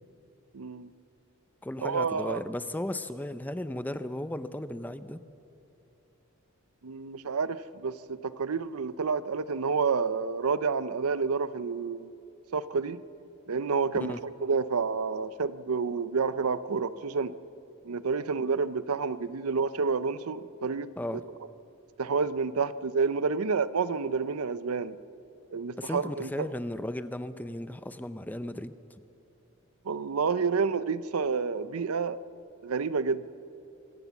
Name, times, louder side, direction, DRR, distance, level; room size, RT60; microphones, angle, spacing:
voice 1, 0.5-0.9 1.8-2.4 6.8-12.1 12.5-13.0 13.5-17.3 17.8-20.9 22.0-25.0 25.5-26.5 29.8-32.2 32.6-33.3, right 5 dB, 85° right, 15 dB, 0.6 m, -29 dB
voice 2, 1.6-5.2 13.9-14.2 21.0-21.2 25.8-28.7, left 1 dB, 10° left, 12 dB, 0.5 m, -35 dB
24.5 x 16.5 x 7.2 m, 2.8 s
head